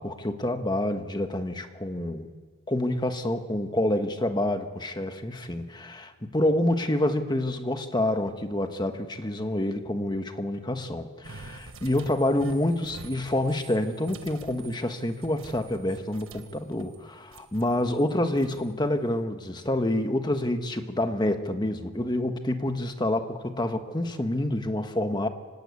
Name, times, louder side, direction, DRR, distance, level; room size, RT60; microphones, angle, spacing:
voice 1, 0.0-2.3 2.7-25.3, left 1 dB, 20° left, 7 dB, 1.4 m, -27 dB
sound 1, 11.2-17.0 17.3-18.7, right 4 dB, 65° right, 1.6 m, -47 dB
25.5 x 18.5 x 8.4 m, 1.5 s
head